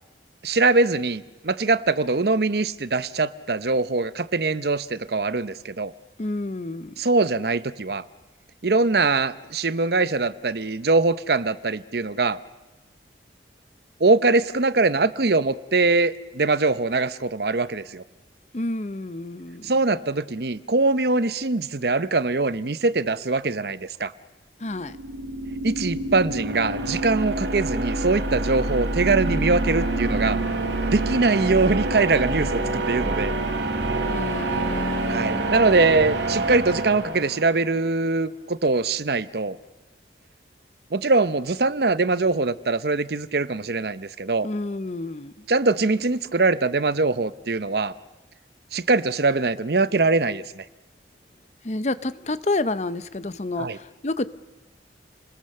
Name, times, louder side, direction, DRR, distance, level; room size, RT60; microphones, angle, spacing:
voice 1, 0.4-5.9 7.0-8.0 8.6-12.4 14.0-18.0 19.6-24.1 25.6-30.4 30.9-33.3 35.1-39.6 40.9-44.5 45.5-47.9 48.7-50.6 53.6-53.8, right 3 dB, 60° right, 15 dB, 0.8 m, -22 dB
voice 2, 6.2-6.9 18.5-19.7 24.6-25.0 34.1-35.7 44.4-45.3 51.6-54.2, left 2 dB, 40° left, 14 dB, 0.7 m, -29 dB
sound 1, 24.8-37.7, right 2 dB, 75° right, 2.9 m, -27 dB
29.0 x 21.0 x 6.6 m, 1.1 s
head